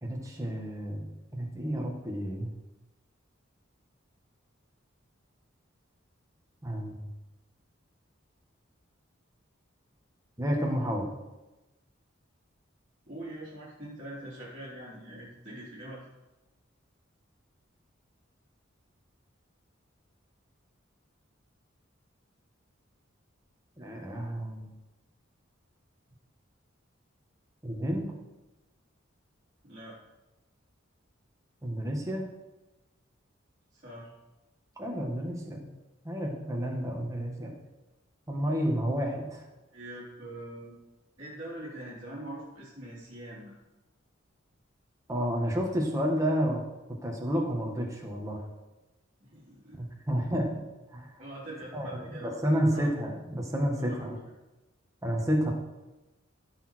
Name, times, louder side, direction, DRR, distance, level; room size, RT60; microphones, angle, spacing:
voice 1, 0.0-1.1 1.3-2.5 6.6-7.0 10.4-11.1 23.8-24.7 27.6-28.1 31.6-32.2 34.8-35.7 36.0-37.5 38.3-39.4 45.1-46.6 47.0-48.4 49.8-50.6 50.9-51.1 51.7-51.9 52.1-54.2 55.0-55.5, equal, 15° right, 0 dB, 1.9 m, -30 dB
voice 2, 13.1-16.0 29.6-30.0 33.7-34.1 39.7-40.7 41.2-43.5 49.2-49.9 51.2-52.4 52.7-52.9 53.8-54.2, right 1 dB, 35° right, -11 dB, 3.6 m, -43 dB
15.5 x 6.6 x 4.6 m, 1.1 s
head